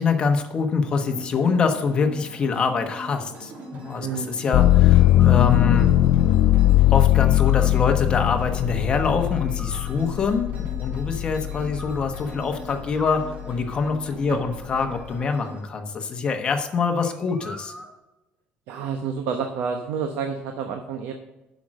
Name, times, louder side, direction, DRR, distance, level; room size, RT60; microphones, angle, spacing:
voice 1, 0.0-5.9 6.9-17.7, left 5 dB, 30° left, 5 dB, 1.1 m, -25 dB
sound 1, 0.8-15.6, right 2 dB, 50° right, 3.1 m, -42 dB
voice 2, 4.0-4.4 14.3-14.4 18.7-21.1, right 6 dB, 85° right, 5 dB, 1.0 m, -29 dB
sound 2, 4.5-12.3 12.8-13.6, left 14 dB, 70° left, 0.3 m, -19 dB
sound 3, 4.9-6.0 7.1-8.2 9.3-10.4 11.5-12.6 12.9-14.0 14.8-16.7 17.0-18.0, left 1 dB, 5° right, 1.2 m, -46 dB
8.3 x 6.2 x 6.3 m, 1.0 s
cardioid pair, 160°, 3 cm